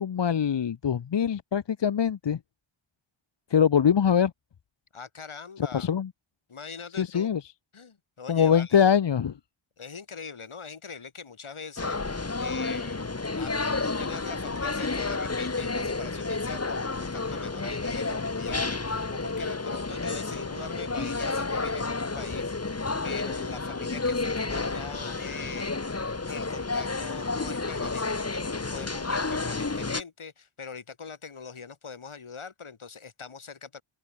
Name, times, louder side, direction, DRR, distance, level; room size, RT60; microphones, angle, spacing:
voice 1, 0.0-2.4 3.5-4.3 5.7-6.1 7.0-7.4 8.3-9.3, left 8 dB, 60° left, 0.8 m, -23 dB
voice 2, 4.9-5.9 6.5-7.3 7.7-8.8 9.8-33.8, left 5 dB, 80° left, 3.5 m, -42 dB
sound 1, 11.8-30.0, left 3 dB, 30° left, 1.8 m, -31 dB
open air
wide cardioid pair, 85°, 49 cm